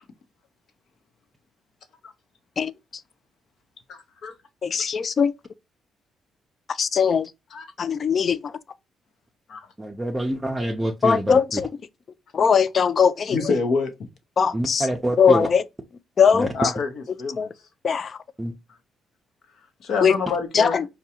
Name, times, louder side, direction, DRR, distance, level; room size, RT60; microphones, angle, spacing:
voice 1, 3.9-4.3 7.5-7.6 9.5-9.6 13.3-13.9 16.5-16.9 17.2-17.5 19.8-20.8, left 4 dB, 70° left, 0.9 m, -26 dB
voice 2, 4.6-5.3 6.8-7.3 7.8-8.4 11.0-11.7 12.3-13.4 14.4-14.8 15.2-15.6 16.2-16.5 17.4-17.5 17.8-18.2 20.0-20.2 20.5-20.9, left 6 dB, 45° left, 0.3 m, -20 dB
voice 3, 9.8-11.6 14.5-15.5 16.3-16.5 18.4-18.5, right 1 dB, 15° right, 0.6 m, -27 dB
4.7 x 2.3 x 2.8 m
cardioid pair, 90°, 0 cm